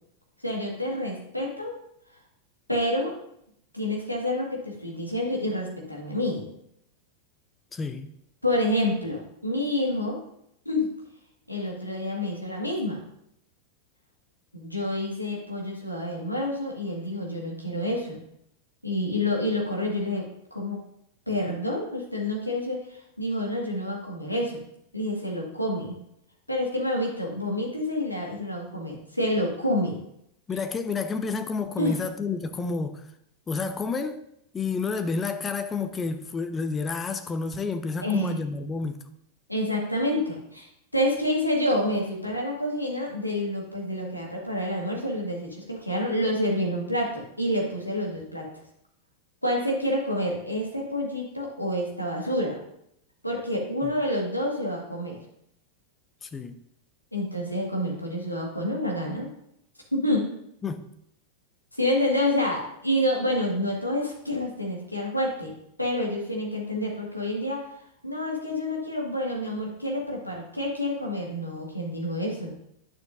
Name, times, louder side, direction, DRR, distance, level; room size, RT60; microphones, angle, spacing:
voice 1, 0.4-1.7 2.1-2.2 2.7-3.1 3.7-6.5 8.4-10.2 10.7-10.9 11.5-13.0 14.5-18.2 18.8-20.2 20.5-20.8 21.3-24.6 24.9-26.0 26.5-30.0 31.8-32.0 38.0-38.4 39.5-48.5 49.4-52.6 53.2-55.2 57.1-59.3 59.9-60.3 61.7-65.5 65.8-72.5, left 1 dB, 90° left, 1.8 m, -28 dB
voice 2, 7.7-8.1 30.5-33.1 33.5-34.3 34.5-39.0 53.8-53.9 56.2-56.6 60.6-60.9, left 4 dB, 20° left, 0.5 m, -30 dB
10.5 x 6.8 x 2.6 m
figure-of-eight pair, 90°, 0 cm